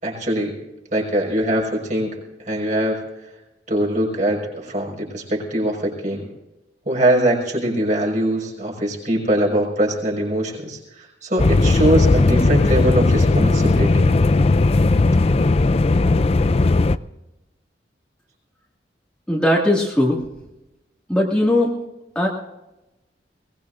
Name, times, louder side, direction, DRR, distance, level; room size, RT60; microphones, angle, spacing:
voice 1, 0.0-0.5 0.9-3.0 3.7-6.3 6.9-14.2, right 1 dB, 45° right, -1 dB, 5.7 m, -22 dB
sound 1, 11.4-17.0, left 3 dB, 35° left, 0.4 m, -16 dB
voice 2, 19.3-20.2 21.1-21.7 22.2-22.3, left 1 dB, 5° left, -3 dB, 2.1 m, -18 dB
22.5 x 20.0 x 2.6 m, 0.98 s
head